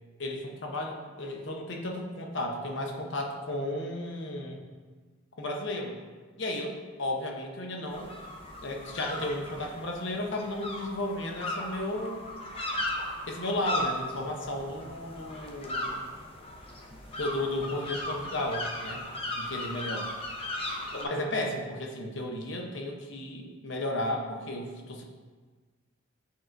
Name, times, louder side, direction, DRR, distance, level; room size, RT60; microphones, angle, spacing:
voice 1, 0.2-4.6 5.4-6.0 6.4-8.1 8.6-12.3 13.3-16.0 17.2-19.0 19.3-20.0 20.9-25.0, left 1 dB, 65° left, 2 dB, 0.8 m, -34 dB
sound 1, 7.9-21.0, left 1 dB, 30° left, 0.6 m, -37 dB
8.4 x 4.4 x 2.6 m, 1.4 s
head